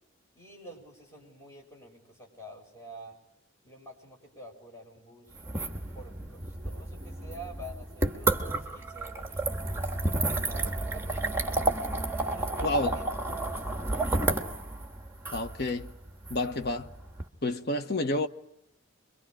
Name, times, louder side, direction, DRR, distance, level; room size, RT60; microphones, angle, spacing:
voice 1, 0.3-3.2 3.6-5.3 5.9-10.0 10.4-11.5 12.3-13.1, right 1 dB, 15° left, 7.3 m, -48 dB
sound 1, 5.3-17.2, right 2 dB, 10° right, 1.6 m, -31 dB
Musical instrument, 7.9-13.6, right 9 dB, 80° left, 3.6 m, -46 dB
voice 2, 12.6-13.0 15.3-15.9 16.3-16.9 17.4-18.3, left 2 dB, 50° left, 1.3 m, -29 dB
28.5 x 23.5 x 5.0 m
head